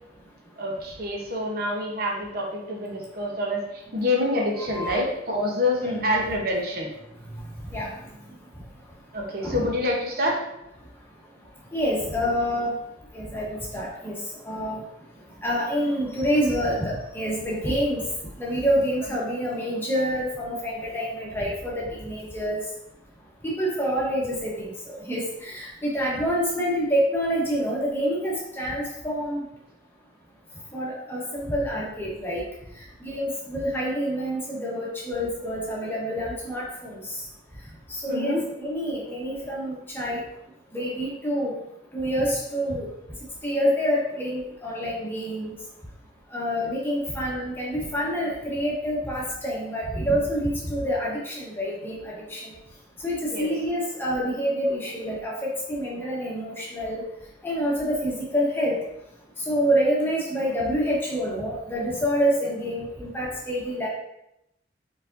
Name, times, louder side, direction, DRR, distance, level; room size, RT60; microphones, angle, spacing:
voice 1, 0.6-3.6 3.9-6.9 9.1-10.4 38.1-38.4 46.6-46.7 53.3-53.5, left 1 dB, 55° right, -1 dB, 0.9 m, -27 dB
voice 2, 4.6-5.0 5.8-6.0 7.7-7.9 9.4-9.7 11.7-12.7 13.1-14.2 14.4-14.8 15.4-18.0 18.4-22.6 23.4-29.4 30.7-32.4 33.0-37.0 37.9-40.2 40.7-41.5 41.9-42.9 43.4-45.5 46.3-52.5 53.0-57.0 57.4-58.8 59.5-63.9, equal, 10° left, -4 dB, 1.0 m, -27 dB
4.9 x 4.0 x 2.6 m, 0.83 s
head